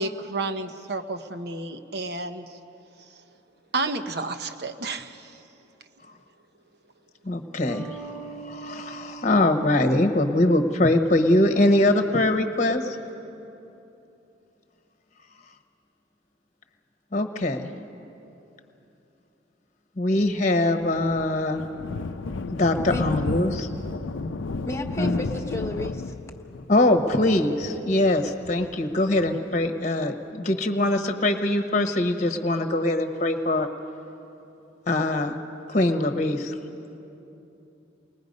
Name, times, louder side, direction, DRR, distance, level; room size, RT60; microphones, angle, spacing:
voice 1, 0.0-2.5 3.7-5.3, right 3 dB, 55° right, 8 dB, 1.0 m, -31 dB
voice 2, 7.2-13.0 17.1-17.7 20.0-21.6 22.5-23.7 25.0-25.2 26.7-33.7 34.9-35.4 35.7-36.5, left 1 dB, 40° left, 6 dB, 1.1 m, -23 dB
sound 1, 7.7-11.0, right 4 dB, 15° right, 0.8 m, -42 dB
Thunder, 20.5-29.7, left 3 dB, 85° left, 0.6 m, -32 dB
voice 3, 24.6-26.1, left 1 dB, 15° left, 4 dB, 1.2 m, -33 dB
29.0 x 20.5 x 5.3 m, 2.9 s
head